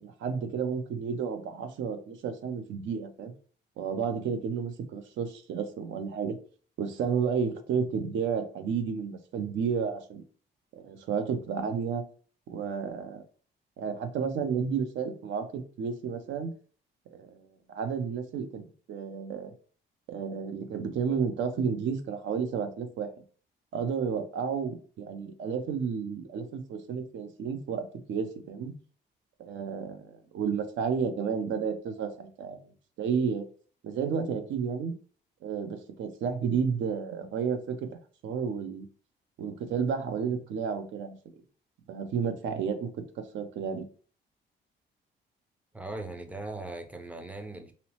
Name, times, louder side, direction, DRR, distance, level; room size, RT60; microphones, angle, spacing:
voice 1, 0.0-3.3 3.8-6.4 6.8-10.2 10.7-12.0 12.5-13.2 13.8-16.5 17.1-19.5 20.1-23.1 23.7-28.7 29.4-32.6 33.0-33.4 33.8-35.0 35.4-37.9 38.2-38.9 39.4-41.1 41.9-42.9 43.2-43.8, right 6 dB, 75° right, 0.5 m, -31 dB
voice 2, 45.7-47.7, right 2 dB, 5° right, 0.4 m, -39 dB
2.7 x 2.0 x 2.8 m
cardioid pair, 90°, 20 cm